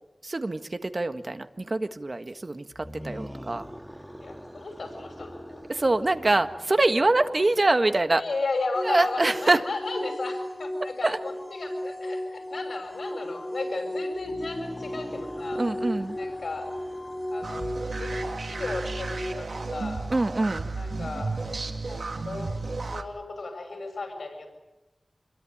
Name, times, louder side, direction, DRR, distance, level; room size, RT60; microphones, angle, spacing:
voice 1, 0.2-3.6 5.7-8.2 8.9-9.6 11.0-11.2 15.5-16.2 20.1-20.7, right 2 dB, 45° right, 8 dB, 1.6 m, -24 dB
sound 1, 2.7-7.9 14.1-19.8, equal, 5° right, 1.7 m, -45 dB
voice 2, 4.2-5.6 8.2-15.6 16.2-16.7 17.3-20.1 20.8-21.4 21.8-22.6 22.9-24.5, left 3 dB, 85° left, 4 dB, 6.8 m, -35 dB
sound 2, 8.7-19.3, left 1 dB, 25° left, 4.7 m, -35 dB
sound 3, 17.4-23.0, right 3 dB, 90° right, 2.3 m, -33 dB
27.0 x 23.0 x 8.7 m, 0.99 s
wide cardioid pair, 80°, 0 cm